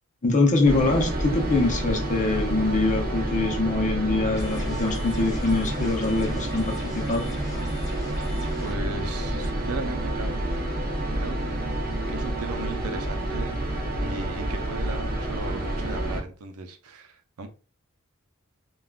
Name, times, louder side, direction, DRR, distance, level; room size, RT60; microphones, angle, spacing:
voice 1, 0.2-7.3, left 2 dB, 35° left, 0.7 m, -24 dB
sound 1, 0.7-16.2, right 1 dB, 45° right, 0.8 m, -29 dB
sound 2, 4.4-8.8, left 1 dB, 15° left, 1.0 m, -43 dB
voice 2, 8.6-11.4 12.1-17.5, right 3 dB, 90° right, 0.5 m, -37 dB
3.5 x 2.4 x 2.3 m
head